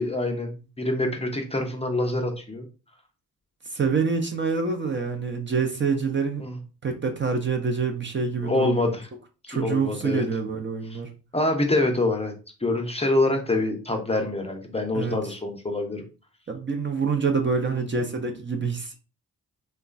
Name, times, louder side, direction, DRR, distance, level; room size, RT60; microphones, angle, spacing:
voice 1, 0.0-2.7 6.4-6.6 8.4-9.1 9.4-10.2 10.9-11.0 11.3-12.3 12.6-16.0 17.7-18.0 18.6-18.7, left 2 dB, 15° left, 0.6 m, -26 dB
voice 2, 3.7-6.4 6.8-8.8 9.5-11.1 14.9-15.2 16.5-19.0, right 5 dB, 30° right, 0.6 m, -26 dB
2.9 x 2.2 x 2.5 m
supercardioid pair, 50°, 37 cm